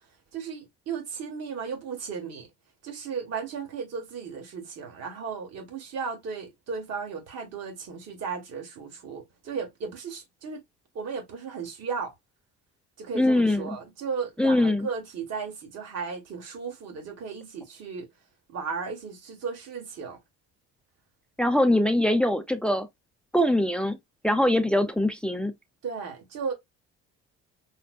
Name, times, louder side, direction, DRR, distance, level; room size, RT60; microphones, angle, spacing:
voice 1, 0.3-2.5 2.8-10.6 10.9-12.1 13.0-18.1 18.5-20.2 25.8-26.5, right 5 dB, 60° right, 1.7 m, -35 dB
voice 2, 13.1-13.8 14.4-14.9 21.4-22.9 23.3-24.0 24.2-25.5, left 1 dB, 5° left, 0.6 m, -22 dB
5.6 x 2.1 x 2.5 m
cardioid pair, 100°, 29 cm